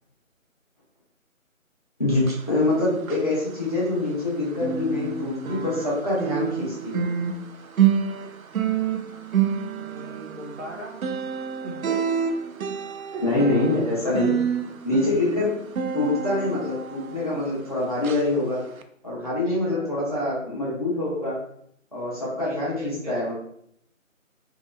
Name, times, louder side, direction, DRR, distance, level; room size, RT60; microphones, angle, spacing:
voice 1, 2.0-7.0 13.2-14.4 14.8-15.5 15.9-18.6 19.0-21.4 21.9-23.3, left 2 dB, 25° left, -8 dB, 0.9 m, -25 dB
sound 1, 2.1-4.3 4.5-17.7 18.0-18.3 18.8-18.9, right 8 dB, 80° right, 0.5 m, -28 dB
voice 2, 9.7-11.0 11.6-12.2 13.1-13.3 19.2-20.2 22.4-23.3, right 1 dB, 60° right, -2 dB, 1.1 m, -39 dB
2.8 x 2.6 x 3.1 m, 0.69 s
figure-of-eight pair, 165°, 41 cm